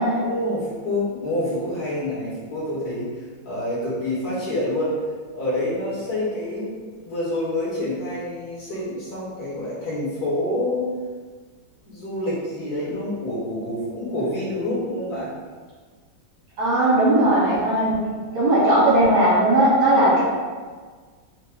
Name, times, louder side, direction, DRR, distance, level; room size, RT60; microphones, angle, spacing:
voice 1, 0.2-3.1 3.4-5.0 5.3-10.9 11.9-15.3, left 1 dB, 55° left, -8 dB, 1.5 m, -27 dB
voice 2, 16.6-18.0 18.3-20.2, right 1 dB, 75° right, -9 dB, 2.5 m, -18 dB
5.8 x 2.1 x 3.4 m, 1.5 s
omnidirectional pair, 2.3 m